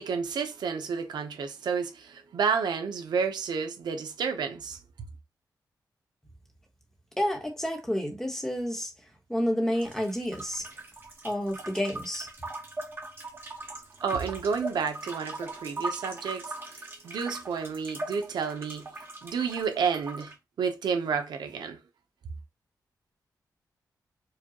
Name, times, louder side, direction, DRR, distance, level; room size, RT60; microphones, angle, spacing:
voice 1, 0.0-4.8 14.0-18.9 19.2-20.3 20.6-21.8, right 6 dB, 90° right, 0.7 m, -30 dB
voice 2, 7.2-8.9 9.3-10.7 11.2-12.3, equal, 5° left, 1.1 m, -29 dB
sound 1, 9.7-20.3, right 2 dB, 35° right, 1.1 m, -40 dB
4.8 x 2.3 x 2.8 m
wide cardioid pair, 130°, 7 cm